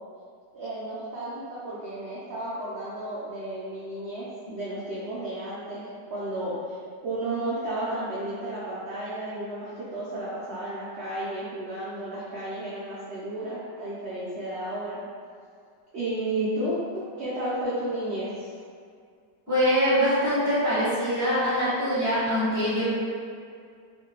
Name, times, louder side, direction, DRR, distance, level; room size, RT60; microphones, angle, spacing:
voice 1, 0.5-6.8 7.0-15.0 15.9-18.6, right 1 dB, 80° right, -9 dB, 0.6 m, -32 dB
voice 2, 19.5-22.8, equal, 15° left, -12 dB, 0.7 m, -23 dB
3.1 x 2.2 x 2.9 m, 2.2 s
omnidirectional pair, 1.8 m